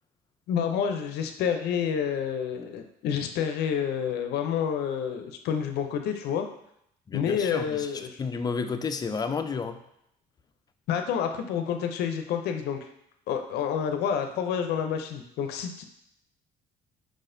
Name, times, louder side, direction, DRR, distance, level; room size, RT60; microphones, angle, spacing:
voice 1, 0.5-6.5 7.1-8.2 10.9-12.8 13.3-15.8, left 8 dB, 75° left, 6 dB, 0.5 m, -29 dB
voice 2, 7.1-7.9 8.2-9.8, left 5 dB, 25° left, 8 dB, 0.4 m, -31 dB
4.9 x 4.1 x 2.6 m, 0.76 s
cardioid pair, 110°, 17 cm